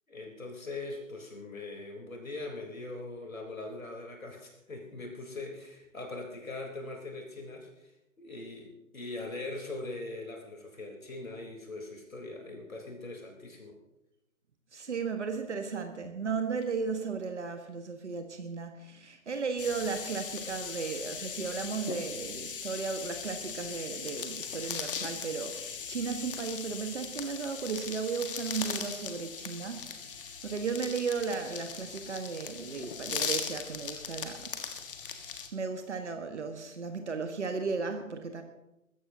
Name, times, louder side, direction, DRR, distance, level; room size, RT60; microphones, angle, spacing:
voice 1, 0.1-7.9 8.2-13.8, left 2 dB, 75° left, 1 dB, 4.0 m, -41 dB
voice 2, 14.7-34.6 35.2-38.4, right 5 dB, 55° right, 6 dB, 1.6 m, -35 dB
sound 1, 19.6-35.5, left 6 dB, 40° left, 1.6 m, -39 dB
21.0 x 16.0 x 2.9 m, 0.91 s
figure-of-eight pair, 140°, 41 cm